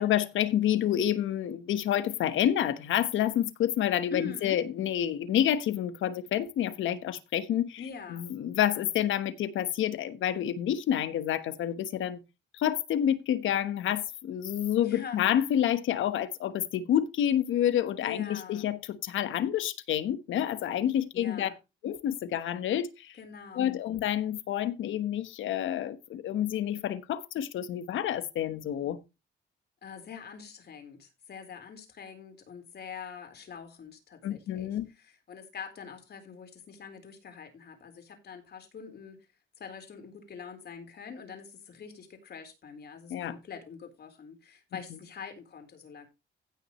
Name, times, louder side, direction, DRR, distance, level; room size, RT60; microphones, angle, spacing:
voice 1, 0.0-7.8 8.1-12.2 12.6-21.5 21.8-23.1 23.6-29.0 34.2-34.9 43.1-43.3, left 10 dB, 80° left, 1.2 m, -28 dB
voice 2, 4.1-4.6 7.8-8.3 14.8-15.2 18.0-18.7 21.1-21.5 23.2-23.8 29.8-39.2 39.6-46.1, left 6 dB, 55° left, 4.0 m, -44 dB
16.0 x 6.3 x 3.1 m
cardioid pair, 90°, 20 cm